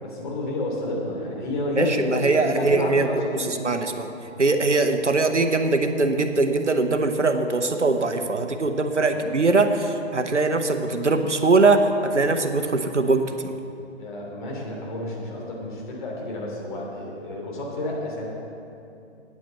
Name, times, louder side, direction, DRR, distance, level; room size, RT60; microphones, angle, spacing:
voice 1, 0.0-3.7 9.1-9.2 14.0-18.3, left 2 dB, 40° left, -3 dB, 3.1 m, -30 dB
voice 2, 1.8-3.2 3.5-4.1 4.4-13.5, right 3 dB, 85° right, 7 dB, 1.0 m, -21 dB
9.3 x 8.6 x 7.9 m, 2.7 s
figure-of-eight pair, 130°, 35 cm